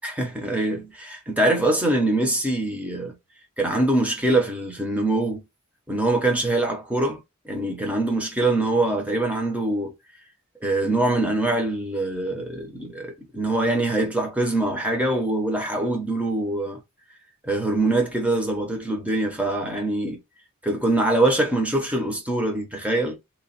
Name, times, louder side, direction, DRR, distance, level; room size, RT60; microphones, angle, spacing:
voice 1, 0.0-3.1 3.6-5.4 5.9-7.2 7.4-9.9 10.6-16.8 17.4-20.2 20.6-23.2, right 2 dB, 5° right, 0.8 m, -23 dB
3.0 x 2.3 x 4.1 m
head